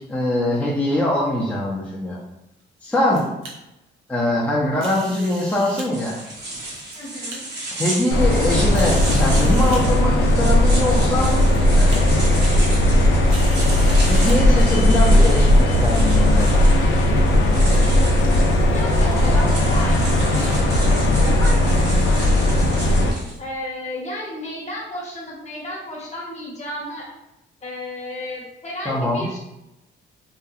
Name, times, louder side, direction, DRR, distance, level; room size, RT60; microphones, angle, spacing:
voice 1, 0.0-2.2 2.8-3.2 4.1-6.2 7.7-11.3 11.8-12.1 14.1-16.7 28.9-29.3, left 1 dB, 5° left, -6 dB, 0.5 m, -23 dB
sound 1, 2.6-3.5 4.8-5.9 6.6-7.4 8.0-8.1 8.7-9.8 10.7-10.8 11.2-11.6 11.9-12.0 13.3-14.4, right 2 dB, 80° right, 0.7 m, -39 dB
sound 2, 5.9-23.4, right 2 dB, 55° right, 1.0 m, -33 dB
voice 2, 6.9-7.4 18.1-20.0 20.3-22.4 23.4-27.1 27.6-29.4, left 1 dB, 35° left, -3 dB, 0.9 m, -33 dB
sound 3, 8.1-23.1, left 1 dB, 75° left, 0.5 m, -17 dB
2.7 x 2.3 x 2.3 m, 0.89 s
cardioid pair, 90°, 20 cm